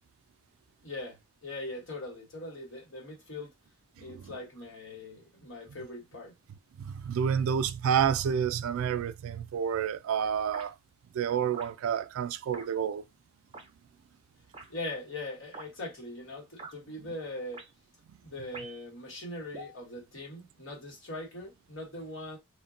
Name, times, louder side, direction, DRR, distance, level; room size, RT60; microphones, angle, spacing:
voice 1, 0.8-3.5 4.0-6.3 14.7-17.6 18.2-22.4, left 2 dB, 65° left, 1.2 m, -41 dB
voice 2, 6.8-10.7 11.1-13.0, right 8 dB, 80° right, 0.3 m, -29 dB
sound 1, 10.5-10.7 11.5-11.7 12.5-12.7 13.5-13.7 14.5-14.7 15.5-15.7 16.6-16.7 17.5-17.7 18.5-18.9 19.5-19.8, right 3 dB, 25° right, 0.5 m, -44 dB
2.2 x 2.1 x 3.6 m
head